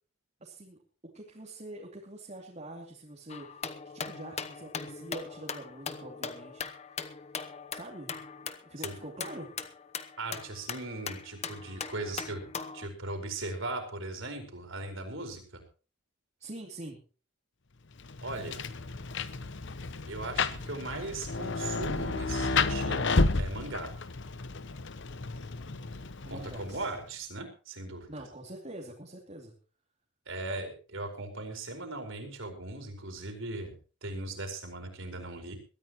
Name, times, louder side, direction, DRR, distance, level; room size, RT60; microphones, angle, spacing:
voice 1, 0.4-7.2 7.7-8.1 8.6-9.5 16.4-17.0 26.2-26.9 28.1-29.5, right 1 dB, 30° right, -2 dB, 2.8 m, -45 dB
sound 1, 3.3-12.9, left 5 dB, 30° left, 0.9 m, -40 dB
voice 2, 10.2-15.6 18.2-18.6 20.1-23.9 26.2-28.1 30.3-33.7 34.0-35.6, right 2 dB, 60° right, 5 dB, 4.6 m, -38 dB
Rain, 18.0-27.0, left 3 dB, 55° left, 0.9 m, -32 dB
22.0 x 13.5 x 3.1 m, 0.36 s
head